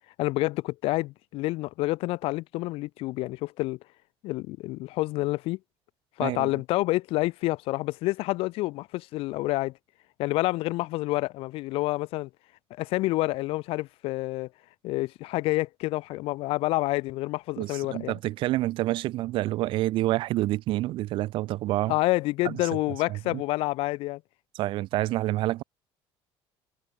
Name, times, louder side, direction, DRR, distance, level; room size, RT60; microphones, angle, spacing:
voice 1, 0.2-3.8 4.2-5.6 6.2-9.7 10.2-12.3 12.8-14.5 14.8-18.2 21.9-24.2, left 20 dB, 65° left, 1.1 m, -28 dB
voice 2, 6.2-6.5 17.6-22.0 22.4-22.6 23.1-23.4 24.5-25.6, right 16 dB, 55° right, 1.0 m, -28 dB
cardioid pair, 175°, 10 cm